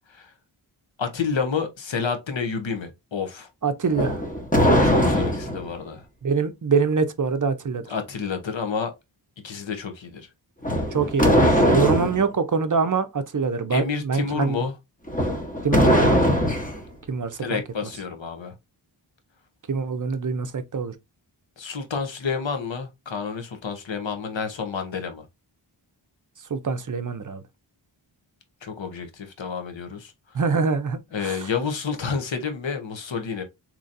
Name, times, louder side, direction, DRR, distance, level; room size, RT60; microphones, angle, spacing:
voice 1, 1.0-3.5 4.8-6.1 7.9-8.9 9.4-10.3 13.7-14.8 17.4-18.5 21.6-25.2 28.6-30.1 31.1-33.4, left 5 dB, 75° left, 1.0 m, -29 dB
voice 2, 3.6-4.2 6.2-7.8 10.9-14.6 15.6-16.2 17.1-17.4 19.7-20.9 26.5-27.4 30.3-31.4, right 5 dB, 45° right, 0.6 m, -24 dB
sound 1, 3.9-5.7 10.6-12.2 15.1-16.8, equal, 15° left, 1.0 m, -20 dB
3.9 x 3.0 x 2.5 m
wide cardioid pair, 80°, 46 cm